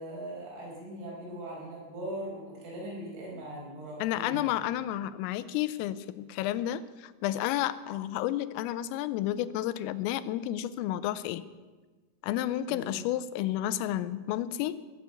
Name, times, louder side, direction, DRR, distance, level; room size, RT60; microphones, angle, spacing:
voice 1, 0.0-4.5 12.7-13.0, right 1 dB, 70° right, -4 dB, 7.6 m, -40 dB
voice 2, 4.0-11.4 12.2-14.8, left 13 dB, 85° left, 15 dB, 3.3 m, -31 dB
19.0 x 8.4 x 8.1 m, 1.3 s
omnidirectional pair, 5.8 m